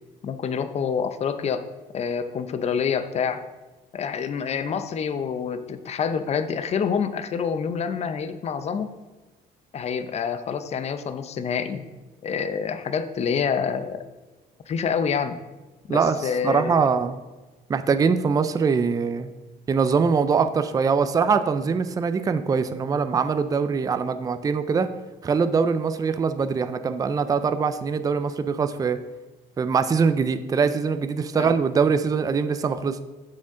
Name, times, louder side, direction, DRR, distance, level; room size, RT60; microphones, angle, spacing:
voice 1, 0.2-1.7 1.9-3.4 3.9-8.9 9.7-11.8 12.2-14.0 14.7-15.4 15.9-16.9 31.3-31.5, left 6 dB, 40° left, 10 dB, 0.6 m, -27 dB
voice 2, 16.4-17.2 17.7-19.3 19.7-24.9 25.2-29.0 29.6-33.0, right 5 dB, 20° right, 10 dB, 0.4 m, -23 dB
7.5 x 6.5 x 3.7 m, 1.2 s
cardioid pair, 110°, 17 cm